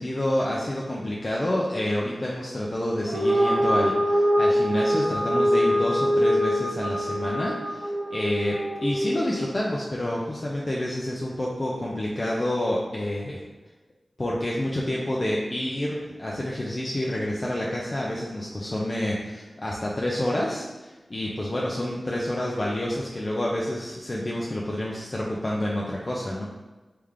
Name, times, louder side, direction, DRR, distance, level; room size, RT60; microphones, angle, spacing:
voice 1, 0.0-13.4 14.2-26.5, left 1 dB, 35° left, -4 dB, 0.5 m, -28 dB
sound 1, 3.1-9.6, equal, 40° right, 1.0 m, -24 dB
3.5 x 3.3 x 3.5 m, 1.2 s
wide cardioid pair, 80°, 0 cm